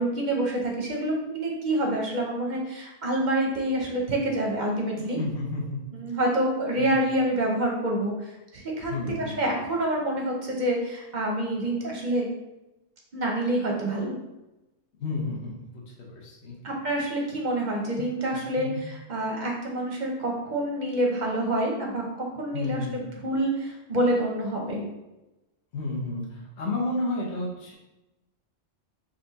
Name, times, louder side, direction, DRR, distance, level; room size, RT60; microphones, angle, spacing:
voice 1, 0.0-5.2 5.9-12.2 13.1-14.2 16.6-18.7 19.1-24.9, right 1 dB, 45° right, -1 dB, 0.8 m, -27 dB
voice 2, 5.0-5.8 6.1-6.2 6.8-6.9 8.8-9.4 15.0-16.6 18.3-18.8 22.5-23.0 25.7-27.7, left 2 dB, 65° left, -3 dB, 1.2 m, -32 dB
4.1 x 2.6 x 4.0 m, 0.99 s
omnidirectional pair, 1.3 m